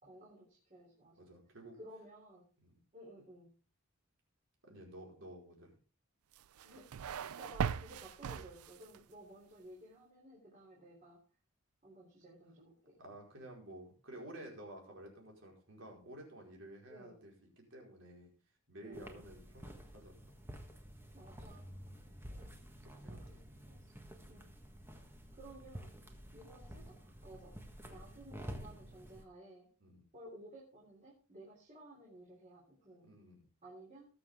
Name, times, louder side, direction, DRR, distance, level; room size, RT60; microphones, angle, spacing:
voice 1, 0.0-1.3 1.8-2.4 2.9-3.6 6.6-11.2 11.8-13.0 16.9-17.2 18.8-19.2 21.1-21.9 22.3-22.6 23.0-23.4 23.7-23.9 24.3-24.5 25.3-25.9 26.3-27.6 27.9-29.7 30.1-33.1 33.6-34.1, right 1 dB, 35° right, -4 dB, 3.7 m, -55 dB
voice 2, 1.2-1.8 2.6-2.8 4.6-5.8 13.0-18.3 18.7-20.2 22.0-22.1 22.9-23.4 24.2-24.4 27.8-27.9 29.8-30.0 33.0-33.4, right 1 dB, 60° right, 0 dB, 4.9 m, -52 dB
sound 1, 6.3-9.0, right 7 dB, 90° right, 0.5 m, -39 dB
sound 2, 18.9-29.2, equal, 10° right, 1.5 m, -50 dB
19.5 x 7.3 x 3.7 m, 0.37 s
head